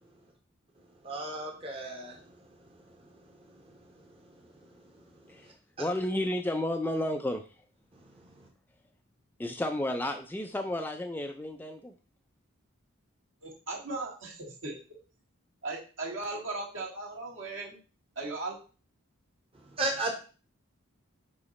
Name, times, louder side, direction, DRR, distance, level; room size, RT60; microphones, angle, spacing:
voice 1, 1.0-2.2 19.8-20.1, right 2 dB, 25° right, 2 dB, 1.0 m, -33 dB
voice 2, 5.3-7.4 9.4-11.9, left 1 dB, 10° left, 5 dB, 0.3 m, -32 dB
voice 3, 13.4-15.0 15.6-17.8 18.2-18.6, right 2 dB, 65° right, -3 dB, 2.1 m, -37 dB
5.4 x 4.9 x 4.1 m, 0.36 s
head